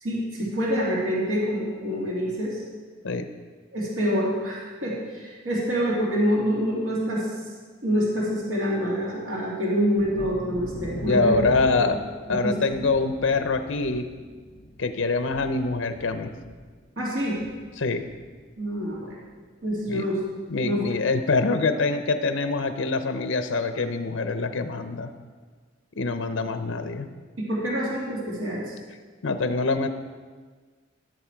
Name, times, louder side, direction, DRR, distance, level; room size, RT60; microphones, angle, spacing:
voice 1, 0.0-2.6 3.7-7.3 7.8-11.3 11.7-11.8 12.3-12.5 17.0-17.4 18.6-19.2 19.6-20.1 20.6-20.8 27.4-28.7, equal, 80° right, -5 dB, 2.6 m, -26 dB
Thunder, 10.0-19.4 19.7-20.4 20.8-20.9 21.3-21.5, left 1 dB, 45° left, 1.0 m, -41 dB
voice 2, 11.0-12.0 12.3-14.1 14.8-16.3 17.8-18.0 19.9-20.0 20.5-25.1 26.0-27.1 29.2-29.9, left 3 dB, 75° left, 9 dB, 0.7 m, -25 dB
15.0 x 6.8 x 4.6 m, 1.5 s
head